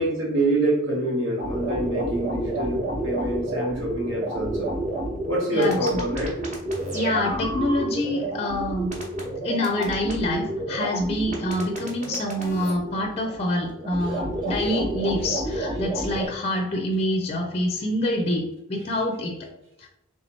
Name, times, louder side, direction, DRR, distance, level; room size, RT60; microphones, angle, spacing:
voice 1, 0.0-4.7 5.3-6.3 14.0-14.2, right 1 dB, 80° right, -2 dB, 1.4 m, -26 dB
sound 1, 1.4-16.3, right 1 dB, 35° right, 1.0 m, -30 dB
voice 2, 5.5-6.0 6.9-9.0 9.4-19.5 19.8-19.9, left 1 dB, 30° left, 3 dB, 0.4 m, -26 dB
3.4 x 2.9 x 4.1 m, 0.85 s
head